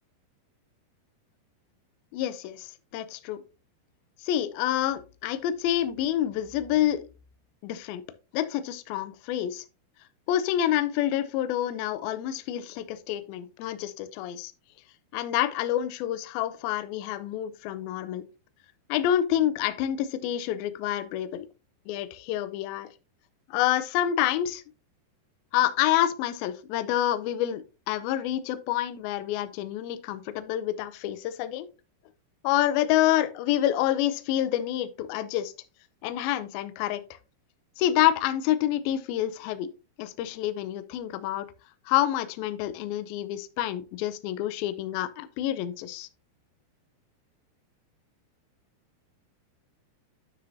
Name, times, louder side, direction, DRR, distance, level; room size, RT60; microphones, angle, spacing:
voice 1, 2.1-3.4 4.2-7.0 7.6-8.0 8.3-9.6 10.3-14.5 15.1-18.2 18.9-21.5 21.9-22.9 23.5-24.6 25.5-31.7 32.4-35.5 36.0-37.0 37.8-39.7 40.0-41.5 41.9-46.1, left 12 dB, 90° left, 13 dB, 2.2 m, -28 dB
9.6 x 6.3 x 2.7 m, 0.30 s
omnidirectional pair, 4.9 m